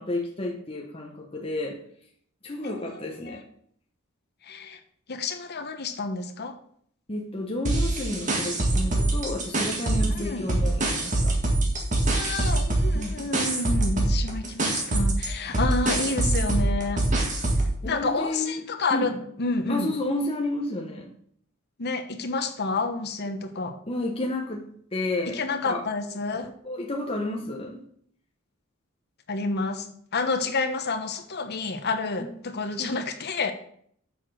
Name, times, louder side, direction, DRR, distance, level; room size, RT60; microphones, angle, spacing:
voice 1, 0.0-1.8 2.4-3.4 7.1-11.4 12.9-13.2 17.8-18.6 18.9-19.2 19.7-21.1 23.9-25.8 26.6-27.9 32.2-32.3 32.8-33.1, left 1 dB, 25° left, 0 dB, 1.0 m, -31 dB
voice 2, 2.6-3.4 4.4-4.8 5.1-6.5 10.1-10.5 12.1-17.0 17.8-19.9 21.8-23.8 25.3-26.5 29.3-29.9 30.1-33.5, left 3 dB, 50° left, 8 dB, 1.0 m, -29 dB
sound 1, 7.6-10.2 10.5-17.7, right 2 dB, 35° right, 1.8 m, -24 dB
7.1 x 6.1 x 6.4 m, 0.64 s
head